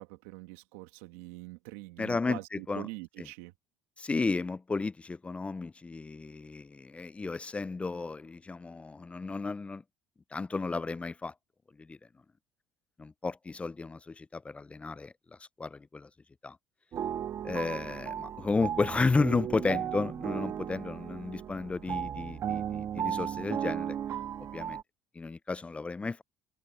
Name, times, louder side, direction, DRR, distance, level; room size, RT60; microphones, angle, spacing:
voice 1, 0.0-3.5, right 22 dB, 85° right, 2.5 m, -44 dB
voice 2, 2.0-2.9 4.0-9.8 10.3-11.3 11.8-12.0 13.0-16.1 16.4-16.6 17.4-24.0 24.5-24.8 25.1-26.2, left 3 dB, 20° left, 0.5 m, -33 dB
sound 1, 16.9-24.8, right 9 dB, 50° right, 1.8 m, -35 dB
supercardioid pair, 85°, 6 cm